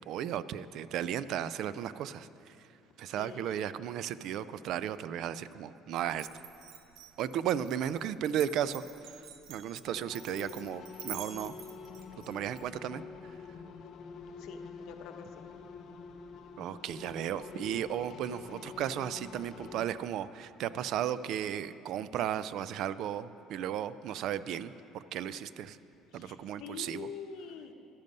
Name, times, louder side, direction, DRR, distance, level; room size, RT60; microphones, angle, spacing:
voice 1, 0.1-2.6 3.0-6.3 7.2-9.2 9.5-11.6 12.2-13.0 16.6-25.8 26.1-27.1, right 10 dB, 55° right, 16 dB, 0.3 m, -35 dB
voice 2, 3.2-3.6 14.1-15.5 26.1-27.7, left 6 dB, 65° left, 5 dB, 0.9 m, -46 dB
Glass, 6.1-12.6, right 8 dB, 70° right, 1.0 m, -47 dB
sound 1, 9.8-19.9, left 6 dB, 40° left, 0.7 m, -47 dB
12.0 x 10.5 x 5.3 m, 2.8 s
cardioid pair, 160°, 0 cm